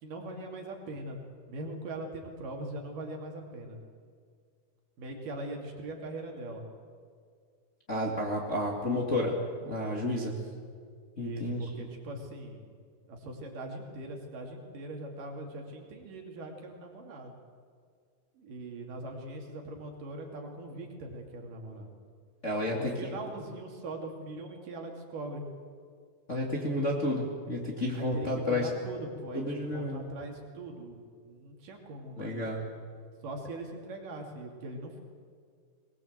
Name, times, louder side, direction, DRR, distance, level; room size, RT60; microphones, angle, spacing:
voice 1, 0.0-1.2 1.5-3.8 5.0-6.7 10.0-10.4 11.2-12.6 13.1-17.4 18.4-22.0 22.7-25.4 28.0-32.4 33.2-35.0, right 2 dB, 65° right, 2 dB, 3.9 m, -41 dB
voice 2, 7.9-10.3 11.2-11.7 22.4-23.1 26.3-28.7 29.3-30.0 32.2-32.6, left 1 dB, 25° left, -1 dB, 1.9 m, -31 dB
21.5 x 20.0 x 7.9 m, 2.1 s
omnidirectional pair, 4.2 m